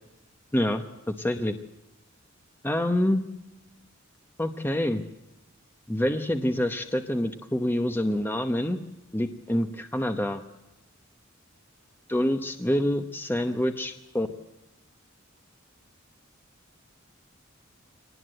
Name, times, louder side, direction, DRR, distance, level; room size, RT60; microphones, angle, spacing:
voice 1, 0.5-1.6 2.6-3.2 4.4-5.0 5.9-8.8 9.1-10.4 12.1-14.3, left 1 dB, 10° left, 7 dB, 0.9 m, -26 dB
24.0 x 19.0 x 7.8 m, 0.94 s
head